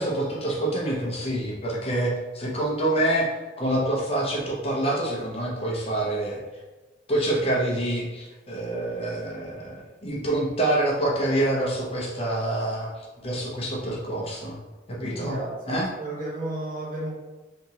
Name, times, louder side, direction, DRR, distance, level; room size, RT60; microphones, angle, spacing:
voice 1, 0.0-6.4 7.1-14.6 14.9-15.4 15.7-15.9, right 1 dB, 30° left, -4 dB, 0.7 m, -26 dB
voice 2, 15.0-17.1, right 1 dB, 45° right, -5 dB, 1.0 m, -33 dB
3.5 x 2.8 x 2.8 m, 1.2 s
head